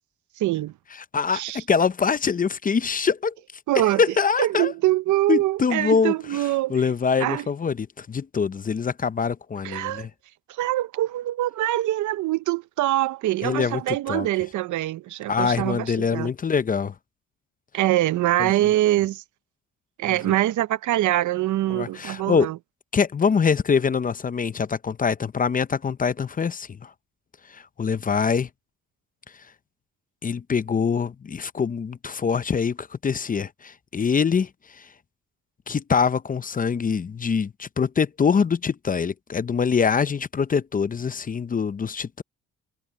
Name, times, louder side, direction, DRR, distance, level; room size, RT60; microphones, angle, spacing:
voice 1, 0.4-0.7 1.3-1.6 3.7-6.9 7.2-7.5 9.6-10.1 10.5-16.3 17.7-19.2 20.0-22.6, right 15 dB, 80° right, 0.8 m, -24 dB
voice 2, 1.1-3.3 4.0-4.7 5.3-6.1 6.7-10.1 13.4-14.3 15.3-16.9 18.4-18.5 21.7-22.5 22.9-26.7 27.5-28.5 30.2-34.5 35.7-42.2, left 6 dB, 30° left, 0.6 m, -24 dB
cardioid pair, 90°, 30 cm